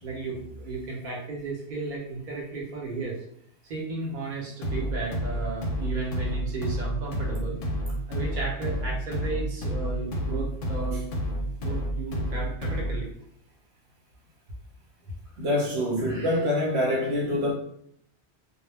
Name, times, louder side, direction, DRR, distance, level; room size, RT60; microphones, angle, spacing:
voice 1, 0.0-3.2 3.6-7.6 8.1-11.0 11.6-13.1 16.0-16.3, right 3 dB, 50° right, 0.8 m, -34 dB
sound 1, 4.6-13.1, equal, 60° left, 0.7 m, -30 dB
voice 2, 15.4-17.5, left 1 dB, 75° right, 0.9 m, -25 dB
2.1 x 2.1 x 3.3 m
omnidirectional pair, 1.1 m